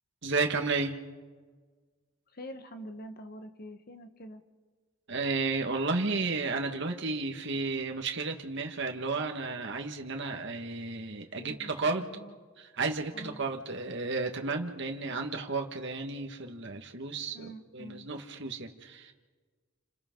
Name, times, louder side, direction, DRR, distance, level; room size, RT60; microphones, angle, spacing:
voice 1, 0.2-1.0 5.1-12.1 12.7-19.1, right 3 dB, 60° right, 3 dB, 1.8 m, -32 dB
voice 2, 2.3-4.4 11.3-11.7 12.0-12.4 13.1-13.5 17.3-18.1, equal, 45° left, 7 dB, 1.4 m, -45 dB
29.5 x 26.5 x 4.0 m, 1.4 s
head